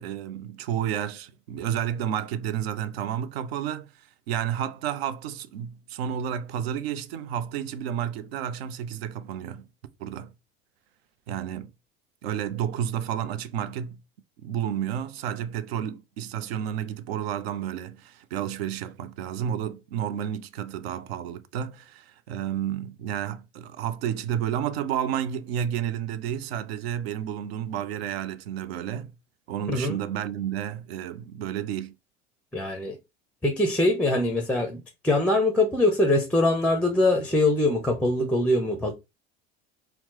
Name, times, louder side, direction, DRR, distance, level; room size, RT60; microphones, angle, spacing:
voice 1, 0.0-3.9 4.3-9.6 10.0-10.3 11.3-11.7 12.2-14.0 14.4-29.1 29.5-31.9, right 9 dB, 60° right, 0.5 m, -31 dB
voice 2, 29.7-30.0 32.5-33.0 33.4-38.9, left 2 dB, 5° left, 0.5 m, -23 dB
4.2 x 2.0 x 2.9 m
figure-of-eight pair, 70°, 34 cm